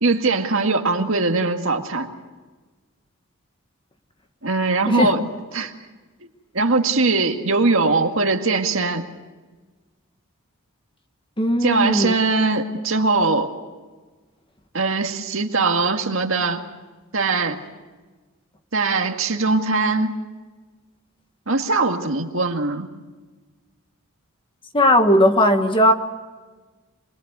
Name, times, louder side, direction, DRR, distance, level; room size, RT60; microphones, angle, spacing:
voice 1, 0.0-2.1 4.4-5.2 5.5-5.7 6.5-9.0 11.6-13.5 14.7-16.6 17.1-17.6 18.7-20.2 21.5-22.9, right 3 dB, 60° right, 4 dB, 2.0 m, -21 dB
voice 2, 11.4-12.2 24.7-25.9, left 1 dB, 20° left, 6 dB, 1.5 m, -17 dB
26.5 x 21.5 x 8.1 m, 1.3 s
head